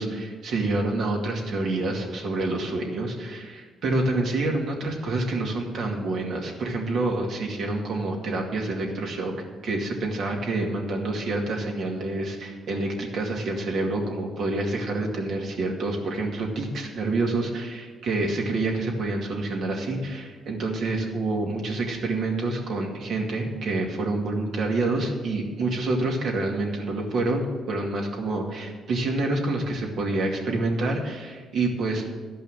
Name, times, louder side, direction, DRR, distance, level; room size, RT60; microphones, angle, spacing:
voice 1, 0.0-9.3 9.6-32.1, right 2 dB, 70° right, 0 dB, 2.3 m, -27 dB
12.5 x 5.5 x 7.7 m, 1.4 s
cardioid pair, 90°, 0 cm